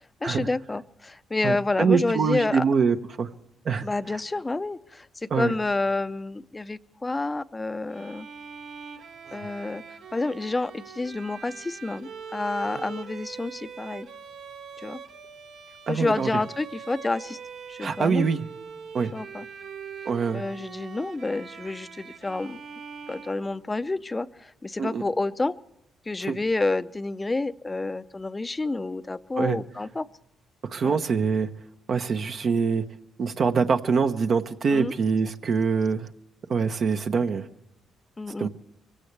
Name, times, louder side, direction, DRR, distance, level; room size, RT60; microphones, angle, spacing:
voice 1, 0.2-2.6 3.8-8.3 9.3-9.8 10.1-14.1 14.8-15.0 15.9-17.4 17.7-18.3 19.1-19.5 20.3-22.6 23.1-25.5 26.1-30.1 30.8-31.0 34.7-34.9 38.2-38.5, left 2 dB, 20° left, 13 dB, 0.6 m, -29 dB
voice 2, 1.4-3.3 3.6-3.9 5.3-5.5 9.3-9.4 15.9-16.3 17.8-18.5 18.9-19.1 20.0-20.4 24.8-25.0 26.3-26.4 29.4-29.6 30.7-31.5 31.9-32.8 33.2-36.1 36.5-37.5 38.4-38.5, right 5 dB, 55° right, 6 dB, 0.9 m, -24 dB
Bowed string instrument, 7.9-23.9, right 6 dB, 75° right, 1.4 m, -42 dB
23.5 x 16.5 x 3.3 m, 0.84 s
cardioid pair, 90°, 0 cm